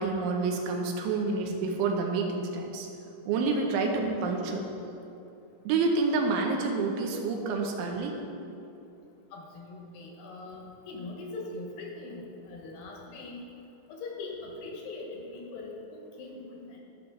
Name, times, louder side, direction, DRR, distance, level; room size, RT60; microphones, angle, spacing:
voice 1, 0.0-2.9 3.3-4.6 5.7-8.2, right 4 dB, 85° right, 2 dB, 3.2 m, -28 dB
voice 2, 9.3-13.4 13.9-16.8, left 3 dB, 70° left, -1 dB, 2.9 m, -41 dB
15.0 x 5.9 x 3.9 m, 2.7 s
omnidirectional pair, 5.3 m